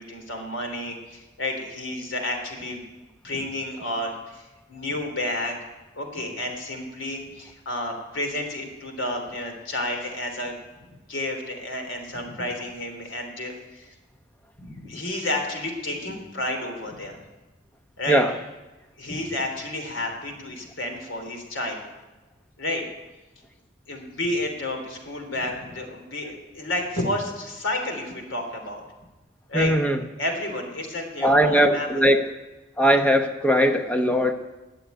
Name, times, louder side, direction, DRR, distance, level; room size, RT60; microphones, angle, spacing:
voice 1, 0.0-5.6 5.9-10.5 11.1-13.9 14.6-17.2 18.0-18.2 19.0-21.8 22.6-22.8 23.9-28.8 29.5-29.7 30.2-32.0, left 1 dB, 85° left, 3 dB, 3.1 m, -31 dB
voice 2, 29.5-30.0 31.2-32.2 32.8-34.3, equal, 5° left, 6 dB, 0.9 m, -20 dB
19.0 x 6.9 x 9.3 m, 1.1 s
head